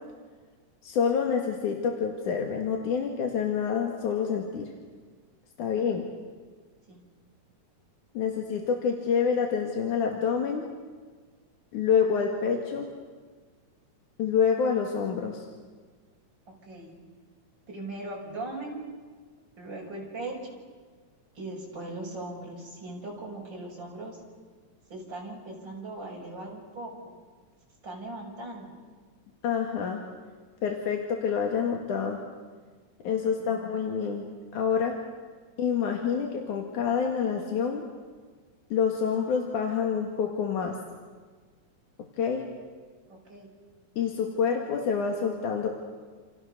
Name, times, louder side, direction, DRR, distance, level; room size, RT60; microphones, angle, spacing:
voice 1, 0.8-4.7 5.6-6.1 8.2-10.7 11.7-12.9 14.2-15.5 29.4-30.0 30.6-32.2 33.0-34.3 34.5-34.9 35.6-37.8 38.7-40.8 42.2-42.4 44.0-45.7, left 6 dB, 85° left, 2 dB, 3.5 m, -27 dB
voice 2, 16.5-17.0 17.7-18.8 19.6-20.4 21.3-24.2 24.9-27.1 27.8-28.8 33.4-33.6 43.1-43.5, right 2 dB, 35° right, -2 dB, 7.2 m, -39 dB
28.5 x 28.5 x 6.8 m, 1.5 s
omnidirectional pair, 3.4 m